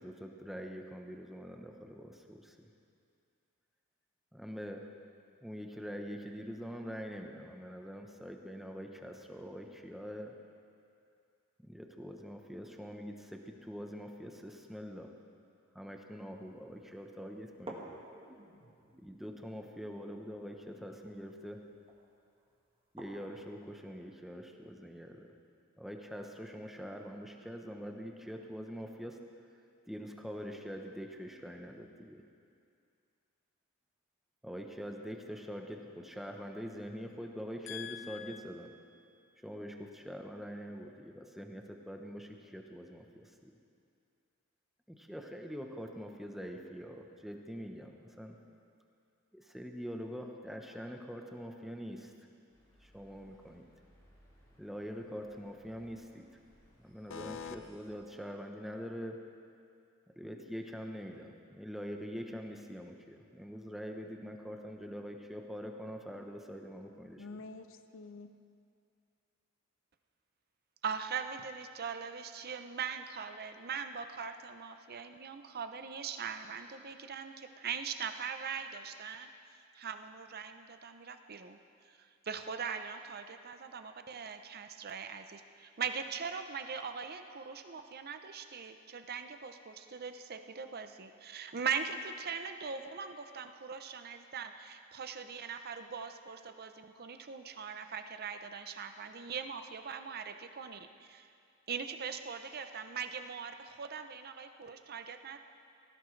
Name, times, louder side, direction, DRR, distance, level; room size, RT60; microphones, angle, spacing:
voice 1, 0.0-2.7 4.3-5.1 5.4-10.5 11.6-15.2 15.7-18.0 19.0-21.7 22.9-25.3 25.8-29.5 29.9-32.2 34.4-38.8 39.4-43.5 44.9-48.4 49.3-52.1 52.8-53.7 54.6-56.3 56.8-59.5 60.2-67.3, equal, ahead, 3 dB, 0.9 m, -44 dB
sound 1, 16.4-16.5 16.9-17.0 17.5-23.5, right 1 dB, 25° right, 1.5 m, -53 dB
voice 2, 37.7-38.4 57.1-57.6 67.2-68.4, left 6 dB, 65° left, 9 dB, 0.7 m, -45 dB
sound 2, 52.5-58.0, equal, 20° left, 3.2 m, -64 dB
voice 3, 70.8-79.3 79.7-81.6 81.9-101.3 101.7-105.4, right 6 dB, 50° right, 8 dB, 0.7 m, -41 dB
18.0 x 15.0 x 3.3 m, 2.4 s
head